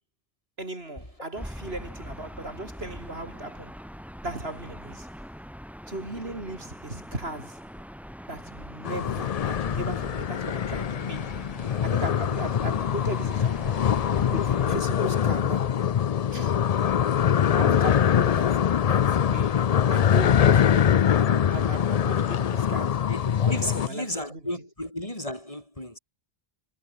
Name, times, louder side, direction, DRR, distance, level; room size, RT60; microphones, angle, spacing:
voice 1, 0.6-3.8 4.2-5.1 5.9-7.7 8.3-11.4 11.8-13.8 14.3-15.8 16.3-16.6 17.5-23.1 23.4-24.4, right 2 dB, 75° right, 5.3 m, -37 dB
Gull seagull / Ocean, 1.3-14.7, equal, ahead, 7.3 m, -42 dB
sound 1, 8.8-23.9, left 9 dB, 50° left, 0.5 m, -23 dB
voice 2, 23.1-26.0, left 1 dB, 35° left, 6.6 m, -33 dB
omnidirectional pair, 1.0 m